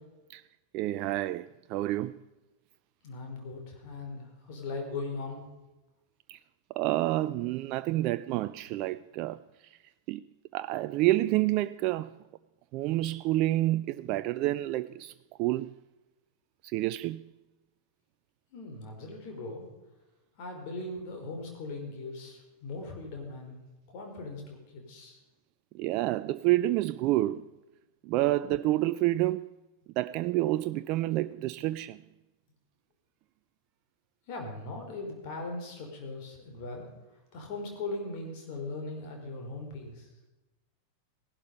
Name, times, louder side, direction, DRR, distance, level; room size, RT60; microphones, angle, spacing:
voice 1, 0.7-2.2 6.3-6.4 6.8-9.4 10.1-10.2 10.5-12.1 12.7-15.1 15.4-15.7 16.7-17.2 25.8-27.4 28.1-29.5 30.0-32.0, right 16 dB, 40° right, 0.4 m, -28 dB
voice 2, 3.0-5.4 18.5-19.7 20.4-23.6 23.9-25.2 34.3-36.9 37.3-40.0, left 3 dB, 45° left, 4.4 m, -39 dB
17.0 x 11.5 x 5.3 m
figure-of-eight pair, 90°, 0 cm